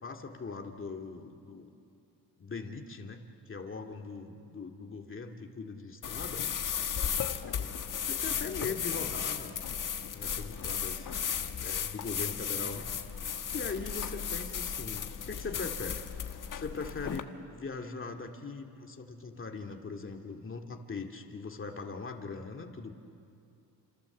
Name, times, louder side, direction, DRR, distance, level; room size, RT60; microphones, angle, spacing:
voice 1, 0.0-1.7 2.4-6.5 7.5-9.7 10.1-11.1 11.6-12.9 13.5-16.0 16.5-22.9, left 4 dB, 30° left, 3 dB, 2.3 m, -41 dB
sound 1, 6.0-17.2, left 8 dB, 50° left, 1.4 m, -35 dB
30.0 x 27.0 x 7.3 m, 2.5 s
cardioid pair, 105°, 39 cm